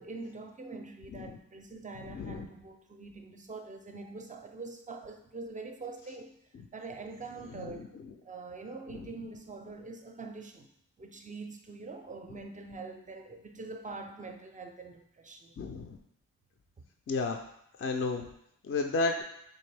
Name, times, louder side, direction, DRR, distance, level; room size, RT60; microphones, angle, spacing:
voice 1, 0.0-6.4 6.7-7.9 8.2-10.7 11.0-15.5, right 3 dB, 25° right, 5 dB, 0.4 m, -44 dB
voice 2, 2.1-2.5 7.5-7.8 15.6-16.0 17.1-17.4 17.8-18.3 18.6-19.2, left 3 dB, 40° left, 4 dB, 0.4 m, -32 dB
3.7 x 2.5 x 3.3 m, 0.72 s
cardioid pair, 60°, 34 cm